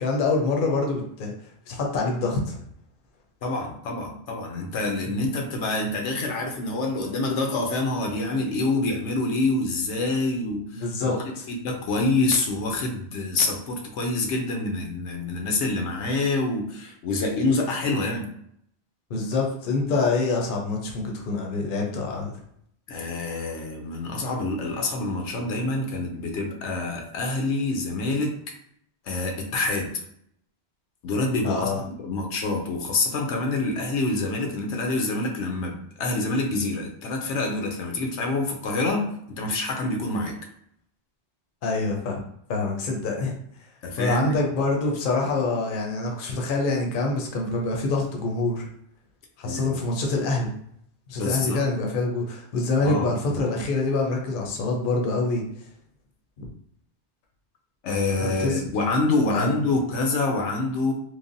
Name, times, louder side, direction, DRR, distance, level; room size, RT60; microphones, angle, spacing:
voice 1, 0.0-1.3 1.7-2.6 5.1-5.2 10.7-11.1 19.1-22.3 31.4-31.8 41.6-42.2 42.5-43.3 44.0-48.7 49.4-50.5 51.1-55.4 56.4-56.5 58.2-58.6 59.3-59.5, left 3 dB, 55° left, 1 dB, 0.7 m, -26 dB
voice 2, 3.4-18.3 22.9-28.4 29.0-29.9 31.0-40.4 43.8-44.4 49.4-49.8 51.2-51.7 52.8-53.4 57.8-60.9, left 2 dB, 85° left, 2 dB, 0.9 m, -26 dB
3.2 x 2.1 x 2.6 m, 0.69 s
omnidirectional pair, 1.2 m